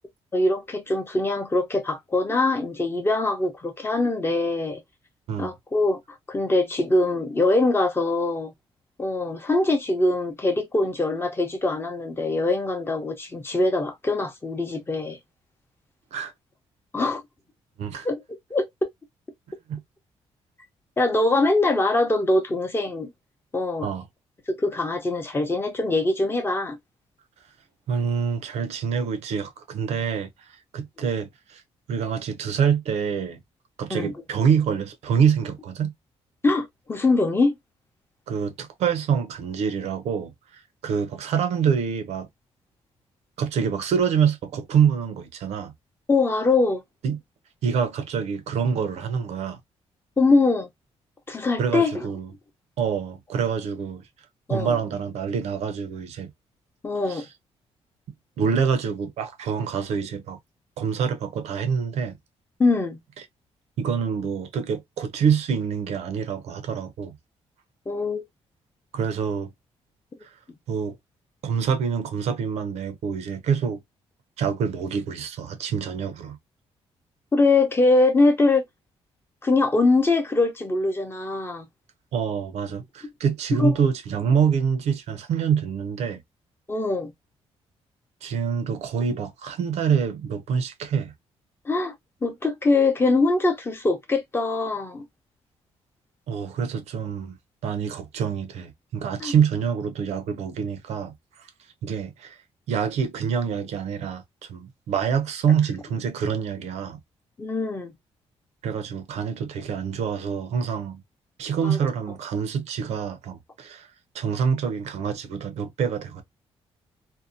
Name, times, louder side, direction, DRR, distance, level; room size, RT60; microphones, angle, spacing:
voice 1, 0.3-4.8 5.4-6.0 6.3-8.5 9.0-15.2 16.9-17.2 18.0-18.2 18.5-18.9 21.0-23.1 23.5-23.9 24.6-26.8 33.9-34.1 36.4-37.5 46.1-46.8 50.2-50.7 51.3-52.1 54.5-54.8 56.8-57.2 62.6-63.0 67.9-68.2 77.3-78.6 79.4-81.7 83.6-83.7 86.7-87.1 91.7-91.9 92.2-95.0 99.2-99.3 107.4-107.9 111.6-111.8, left 2 dB, 20° left, 0.7 m, -22 dB
voice 2, 27.9-31.6 31.9-33.4 33.8-35.9 38.3-42.3 43.4-45.7 47.0-47.2 47.6-49.6 51.6-52.3 52.8-54.0 54.5-56.3 57.1-57.3 58.4-60.4 60.8-62.2 63.8-67.1 68.9-69.5 70.2-70.3 70.7-71.0 71.4-73.8 74.4-76.4 82.1-86.2 88.2-91.1 96.3-97.4 97.6-101.5 101.8-102.4 102.7-107.0 108.6-111.0 111.4-113.9 114.1-116.2, right 7 dB, 80° right, 0.6 m, -26 dB
2.6 x 2.1 x 2.5 m
cardioid pair, 130°, 11 cm